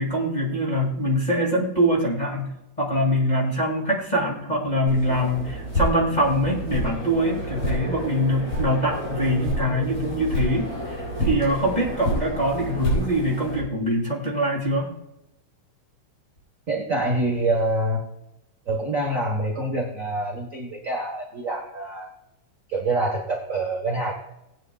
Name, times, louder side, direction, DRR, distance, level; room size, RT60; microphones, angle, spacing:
voice 1, 0.0-14.9, equal, 15° left, -3 dB, 1.8 m, -24 dB
sound 1, 4.9-13.6, equal, 50° left, 5.2 m, -29 dB
voice 2, 16.7-18.0 18.7-22.1 22.7-24.1, right 2 dB, 50° right, -1 dB, 1.0 m, -26 dB
19.5 x 8.9 x 2.4 m, 0.88 s
omnidirectional pair, 3.7 m